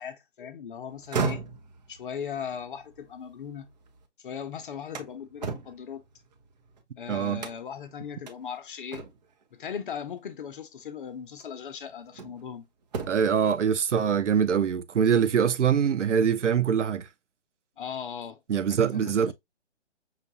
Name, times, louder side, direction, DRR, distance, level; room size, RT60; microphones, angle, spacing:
voice 1, 0.0-1.4 1.9-3.7 4.2-6.0 7.0-9.0 9.5-12.7 17.8-18.4 18.7-19.3, left 7 dB, 45° left, 0.7 m, -38 dB
sound 1, 0.9-4.0 4.4-6.8 7.4-7.8 8.3-8.4 8.9-9.4 10.6-10.8 11.4-12.5 12.8-13.4, right 4 dB, 35° right, 0.7 m, -36 dB
voice 2, 7.1-7.4 13.1-17.1 18.5-19.3, right 7 dB, 90° right, 0.6 m, -24 dB
5.7 x 2.4 x 2.7 m
hypercardioid pair, 150°, 35 cm